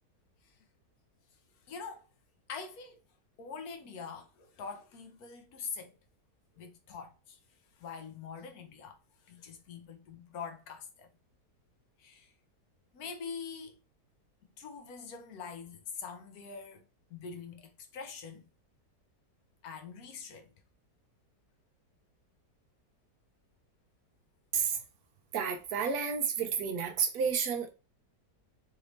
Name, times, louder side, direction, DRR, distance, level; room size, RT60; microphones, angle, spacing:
voice 1, 1.7-2.1 2.5-3.0 3.4-6.0 6.6-7.4 7.8-9.0 9.3-11.1 12.0-12.3 12.9-13.8 14.6-16.8 17.1-18.5 19.6-20.5, left 5 dB, 70° left, 1.1 m, -44 dB
voice 2, 25.3-27.7, right 6 dB, 70° right, 1.1 m, -31 dB
4.1 x 2.6 x 3.0 m
omnidirectional pair, 1.8 m